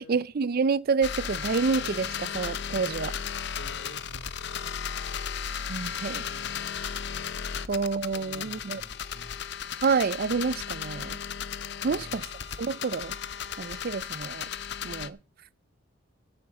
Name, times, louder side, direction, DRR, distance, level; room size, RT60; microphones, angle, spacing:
voice 1, 0.0-3.1 5.7-6.2 7.7-8.8 9.8-11.2 11.8-12.3 12.6-13.2 13.6-14.5 14.8-15.2, right 5 dB, 50° right, 0.4 m, -28 dB
sound 1, 1.0-15.1, left 8 dB, 60° left, 0.7 m, -35 dB
voice 2, 3.5-4.3 6.2-6.7 7.5-7.6 8.1-9.5 11.8-12.2, equal, 85° left, 2.4 m, -49 dB
9.3 x 7.9 x 7.2 m
head